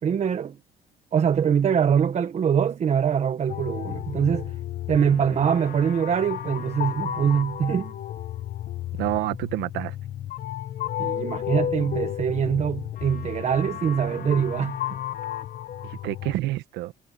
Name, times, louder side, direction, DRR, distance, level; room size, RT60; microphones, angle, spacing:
voice 1, 0.0-0.6 1.1-4.5 4.9-7.9 11.0-14.8, right 7 dB, 40° right, 1.1 m, -23 dB
sound 1, 3.5-16.4, left 11 dB, 55° left, 1.5 m, -33 dB
voice 2, 9.0-9.9 15.9-16.9, right 16 dB, 90° right, 1.2 m, -28 dB
cardioid pair, 110°, 17 cm